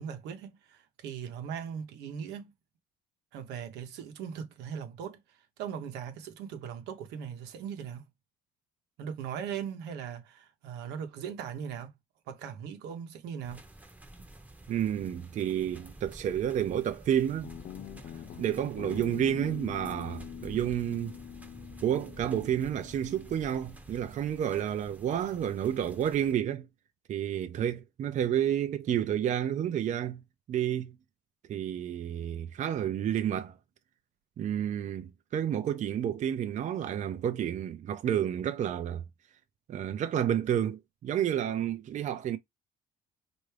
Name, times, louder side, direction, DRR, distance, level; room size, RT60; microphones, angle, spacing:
voice 1, 0.0-2.5 3.3-8.1 9.0-11.9 12.3-13.6, right 8 dB, 90° right, 0.9 m, -39 dB
sound 1, 13.4-26.3, right 1 dB, 10° right, 0.8 m, -50 dB
voice 2, 14.7-17.5 18.4-21.2 21.8-26.7 27.1-30.2 30.5-31.0 31.5-33.5 34.4-39.0 39.7-42.4, right 10 dB, 45° right, 0.5 m, -30 dB
Guitar, 17.4-24.0, left 11 dB, 50° left, 0.4 m, -45 dB
4.5 x 2.6 x 3.2 m
cardioid pair, 110°, 17 cm